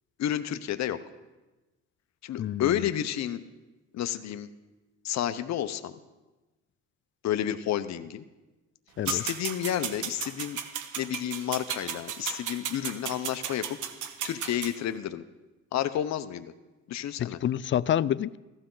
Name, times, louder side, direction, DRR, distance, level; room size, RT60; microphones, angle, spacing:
voice 1, 0.2-1.0 2.2-3.4 3.9-4.5 5.0-5.9 7.2-8.2 9.1-10.6 11.0-13.8 14.2-15.2 15.7-16.5 16.9-17.4, left 11 dB, 65° left, 10 dB, 0.7 m, -30 dB
voice 2, 2.4-2.8 9.0-9.2 17.2-18.4, left 10 dB, 40° left, 20 dB, 0.4 m, -28 dB
sound 1, 9.1-14.7, right 8 dB, 85° right, 1.2 m, -35 dB
15.0 x 14.5 x 3.9 m, 1.1 s
cardioid pair, 90°, 30 cm